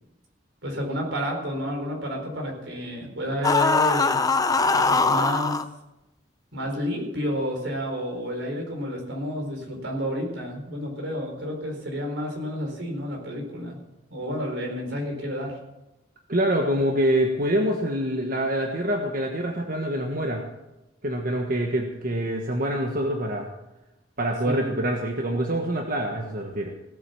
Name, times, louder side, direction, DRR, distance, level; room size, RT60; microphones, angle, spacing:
voice 1, 0.6-4.2 4.9-5.5 6.5-13.8 14.1-15.5 24.4-24.7, equal, 85° right, 1 dB, 4.5 m, -30 dB
sound 1, 3.4-5.6, left 4 dB, 20° left, 0.6 m, -21 dB
voice 2, 16.3-20.4 21.0-23.5 24.2-26.7, right 1 dB, 50° right, 2 dB, 1.4 m, -25 dB
17.5 x 8.0 x 7.0 m, 0.97 s
head